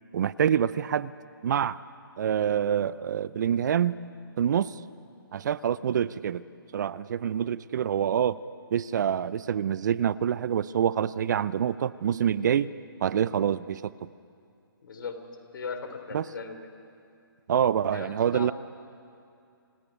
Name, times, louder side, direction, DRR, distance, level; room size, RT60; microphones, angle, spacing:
voice 1, 0.1-1.1 1.4-1.8 2.2-4.0 4.4-4.8 5.3-6.4 6.7-8.4 8.7-12.7 13.0-13.9 16.1-16.2 17.5-18.5, right 9 dB, 50° right, 19 dB, 0.5 m, -26 dB
voice 2, 14.8-15.2 15.5-16.6 17.9-18.5, left 5 dB, 60° left, 8 dB, 3.2 m, -38 dB
27.5 x 9.9 x 9.5 m, 2.5 s
hypercardioid pair, 145°, 12 cm